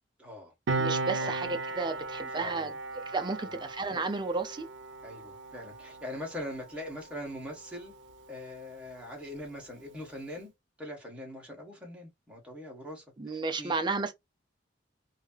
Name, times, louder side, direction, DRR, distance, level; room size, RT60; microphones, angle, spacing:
voice 1, 0.2-0.5 1.2-1.3 2.3-2.7 3.5-3.6 5.0-7.9 8.3-10.5 10.8-13.0 13.3-13.7, left 1 dB, 5° right, 1.5 m, -42 dB
Piano, 0.7-7.7 8.0-8.2, right 3 dB, 85° right, 0.6 m, -36 dB
voice 2, 0.8-4.7 13.2-14.1, right 3 dB, 25° right, 0.6 m, -33 dB
3.1 x 2.7 x 2.3 m
head